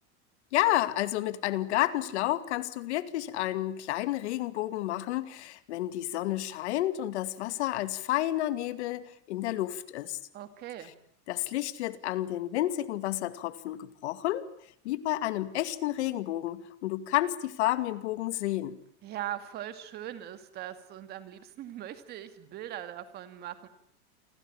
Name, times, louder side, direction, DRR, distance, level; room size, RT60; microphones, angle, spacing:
voice 1, 0.5-10.2 11.3-14.5 14.8-18.8, left 14 dB, 70° left, 13 dB, 2.4 m, -30 dB
voice 2, 10.3-10.9 19.0-23.7, right 12 dB, 30° right, 11 dB, 2.3 m, -40 dB
29.0 x 23.0 x 8.8 m, 0.65 s
supercardioid pair, 175°, 35 cm